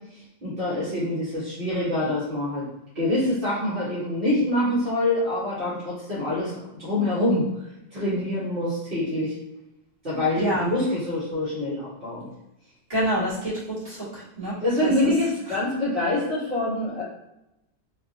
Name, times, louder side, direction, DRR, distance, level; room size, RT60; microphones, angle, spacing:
voice 1, 0.4-2.6 2.9-7.5 7.9-9.3 10.0-12.3 14.6-17.0, left 1 dB, 60° right, -11 dB, 1.3 m, -25 dB
voice 2, 10.3-10.7 12.9-14.5 14.8-15.1, right 1 dB, 35° right, -11 dB, 1.7 m, -27 dB
3.3 x 2.6 x 2.6 m, 0.90 s
omnidirectional pair, 1.1 m